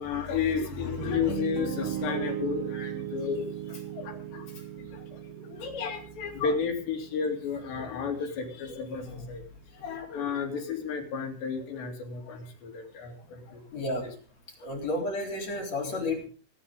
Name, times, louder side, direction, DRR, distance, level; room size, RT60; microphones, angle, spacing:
voice 1, 0.0-3.5 3.8-4.5 4.8-9.4 9.7-13.6 14.0-14.1, left 6 dB, 70° left, 2 dB, 4.6 m, -32 dB
Piano, 0.7-8.8, right 11 dB, 75° right, 2.0 m, -38 dB
voice 2, 13.7-14.1 14.6-16.3, left 2 dB, 35° left, -1 dB, 4.6 m, -32 dB
27.0 x 9.1 x 3.6 m, 0.37 s
omnidirectional pair, 5.4 m